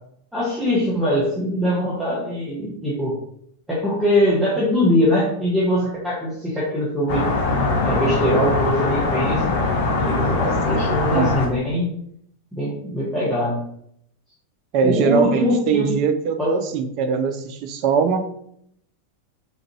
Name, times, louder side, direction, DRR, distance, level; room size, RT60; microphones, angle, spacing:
voice 1, 0.3-3.1 3.7-7.3 7.8-9.5 9.8-11.9 12.5-13.6 14.8-15.9 16.4-16.6, equal, 5° right, -8 dB, 0.9 m, -22 dB
sound 1, 7.1-11.5, left 3 dB, 50° left, 0.7 m, -22 dB
voice 2, 14.7-18.3, right 6 dB, 40° right, 8 dB, 0.3 m, -21 dB
3.4 x 2.5 x 3.0 m, 0.70 s
figure-of-eight pair, 90°, 0 cm